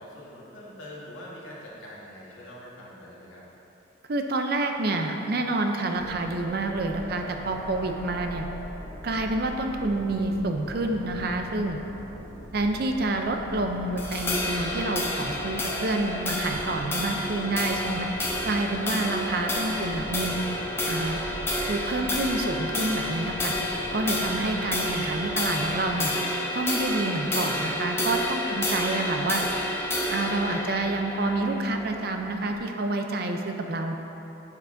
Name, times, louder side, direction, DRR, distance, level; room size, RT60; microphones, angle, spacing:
voice 1, 0.0-3.4, left 1 dB, 85° left, -5 dB, 1.5 m, -44 dB
voice 2, 4.1-8.5 9.0-11.8 12.5-18.1 18.4-20.3 20.9-21.2 21.7-23.5 23.9-26.1 26.5-29.5 30.1-33.9, right 2 dB, 50° right, 4 dB, 0.5 m, -28 dB
sound 1, 5.9-25.9, equal, 40° left, 1.3 m, -41 dB
sound 2, 12.6-12.7 13.3-13.7 14.2-14.7 15.0-15.7 16.3-16.7 17.3-17.7 18.2-18.6 19.2-19.6 20.2-20.7 21.2-21.7 22.3-22.7 23.2-23.7 24.2-24.7 25.3-25.7, right 1 dB, 80° right, 1.1 m, -53 dB
sound 3, 14.0-32.6, left 1 dB, 10° left, 0.4 m, -30 dB
10.0 x 5.8 x 2.6 m, 3.0 s
head